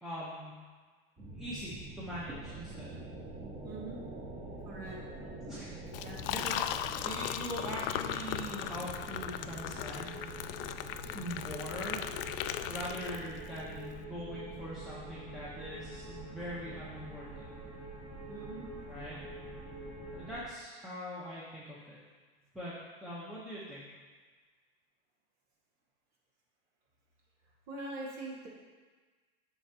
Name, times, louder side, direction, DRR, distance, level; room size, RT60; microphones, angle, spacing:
voice 1, 0.0-0.6 1.3-2.9 5.2-5.8 6.3-10.5 11.1-12.2 12.6-17.5 18.9-19.2 20.1-22.0 22.5-23.9, equal, ahead, -9 dB, 1.0 m, -42 dB
Horror Ambient, 1.2-20.4, right 2 dB, 20° right, 1.9 m, -45 dB
voice 2, 3.6-4.0 4.6-5.0 6.0-6.5 18.3-18.7 27.7-28.5, right 2 dB, 55° right, -4 dB, 1.9 m, -43 dB
Liquid, 5.9-13.6, left 11 dB, 65° left, 0.4 m, -38 dB
8.4 x 6.3 x 2.9 m, 1.4 s
supercardioid pair, 135°, 31 cm